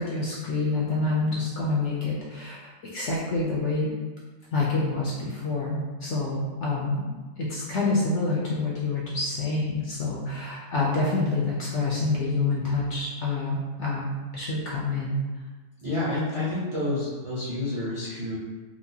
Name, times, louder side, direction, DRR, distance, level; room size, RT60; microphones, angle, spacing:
voice 1, 0.0-2.6 2.9-4.0 4.5-14.1 14.3-15.2, left 3 dB, 65° left, -5 dB, 0.7 m, -27 dB
voice 2, 15.8-18.4, left 2 dB, 35° right, -8 dB, 0.5 m, -29 dB
4.5 x 2.1 x 2.7 m, 1.3 s
omnidirectional pair, 1.6 m